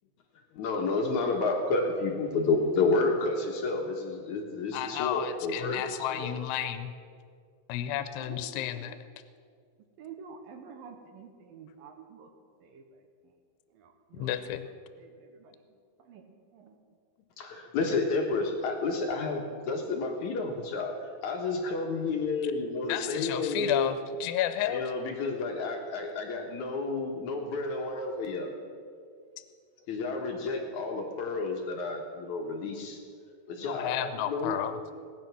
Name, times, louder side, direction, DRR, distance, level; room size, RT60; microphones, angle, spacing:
voice 1, 0.6-5.8 6.1-6.3 17.4-20.9 21.2-23.9 24.7-28.5 29.9-33.0 33.5-33.9 34.2-34.6, left 3 dB, 60° left, 2 dB, 2.3 m, -30 dB
voice 2, 4.7-6.9 7.7-9.0 14.1-14.7 22.9-24.8 33.5-34.8, left 11 dB, 85° left, 10 dB, 2.8 m, -32 dB
voice 3, 7.9-8.5 8.8-9.0 10.0-12.3 12.6-13.0 13.7-14.4 15.0-15.6 16.0-16.8, right 6 dB, 70° right, 5 dB, 2.6 m, -49 dB
18.5 x 10.0 x 6.0 m, 2.2 s
omnidirectional pair, 4.6 m